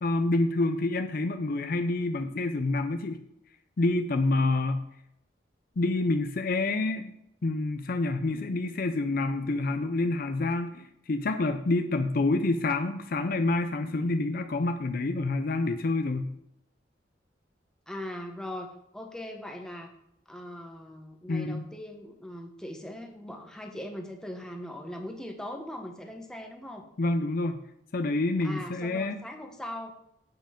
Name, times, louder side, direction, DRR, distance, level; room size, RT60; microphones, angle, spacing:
voice 1, 0.0-3.2 3.8-4.8 5.8-7.1 7.4-16.3 21.3-21.7 27.0-27.6 27.9-29.2, left 2 dB, 50° left, 7 dB, 0.5 m, -27 dB
voice 2, 17.9-18.7 18.9-19.9 20.3-26.9 28.4-29.9, left 1 dB, 5° left, 3 dB, 1.0 m, -40 dB
7.9 x 5.1 x 5.1 m, 0.79 s
head